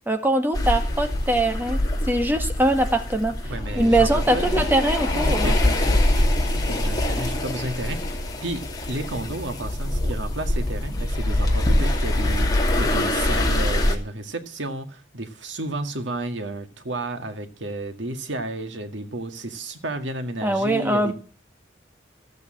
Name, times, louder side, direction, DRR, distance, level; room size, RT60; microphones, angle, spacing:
voice 1, 0.1-1.8 2.1-3.3 3.8-5.6 20.4-21.1, right 1 dB, 10° right, 1.9 m, -22 dB
sound 1, 0.5-13.9, left 1 dB, 20° left, 2.8 m, -24 dB
voice 2, 3.4-4.7 5.1-21.1, right 1 dB, 80° right, 1.9 m, -32 dB
15.0 x 8.3 x 8.7 m
head